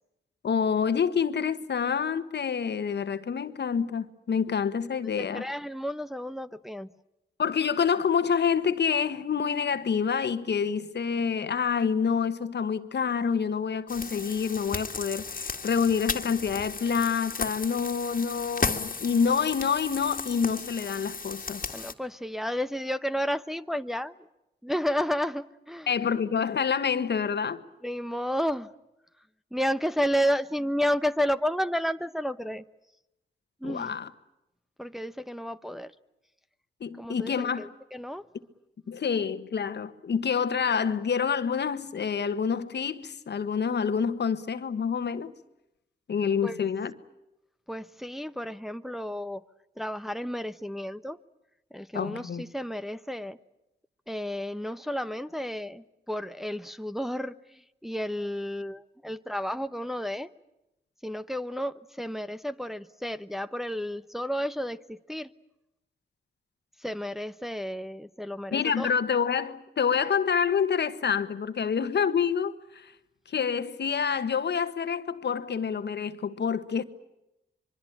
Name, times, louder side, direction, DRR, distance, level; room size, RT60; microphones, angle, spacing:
voice 1, 0.4-5.4 7.4-21.7 25.9-27.6 33.6-34.1 36.8-37.7 38.9-45.3 46.1-46.9 51.9-52.4 68.5-72.9 73.3-76.8, left 6 dB, 60° left, 1.4 m, -27 dB
voice 2, 5.0-6.9 21.7-24.3 24.6-25.9 27.8-28.7 29.5-32.6 33.6-34.0 34.8-35.9 37.0-38.2 46.4-46.6 47.7-49.4 49.8-51.2 51.7-53.4 54.1-60.3 61.0-65.3 66.8-68.9, equal, ahead, 0.9 m, -32 dB
sound 1, 13.9-21.9, left 5 dB, 45° left, 2.0 m, -35 dB
25.0 x 23.0 x 8.8 m
cardioid pair, 55°, 19 cm